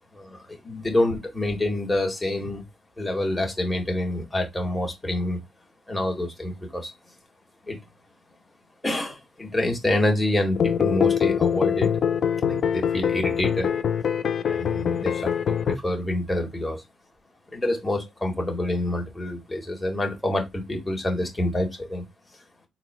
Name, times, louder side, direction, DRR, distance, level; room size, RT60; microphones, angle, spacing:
voice 1, 0.1-2.6 3.0-5.4 5.9-6.9 7.7-7.8 8.8-11.9 12.5-13.7 14.5-16.8 17.5-22.0, left 1 dB, 15° left, 1.6 m, -27 dB
sound 1, 10.5-15.8, left 8 dB, 55° left, 0.4 m, -23 dB
3.9 x 2.2 x 4.2 m
cardioid pair, 90°, 0 cm